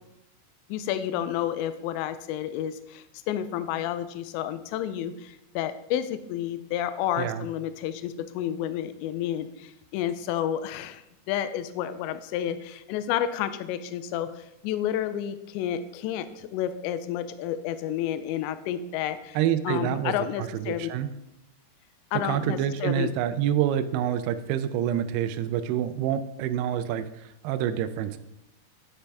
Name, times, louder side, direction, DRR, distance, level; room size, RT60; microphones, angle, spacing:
voice 1, 0.7-19.4 19.7-20.9 22.1-23.1, left 10 dB, 85° left, 12 dB, 2.8 m, -30 dB
voice 2, 19.4-21.1 22.2-28.2, right 10 dB, 85° right, 10 dB, 2.3 m, -27 dB
9.8 x 7.0 x 3.4 m, 0.85 s
omnidirectional pair, 5.0 m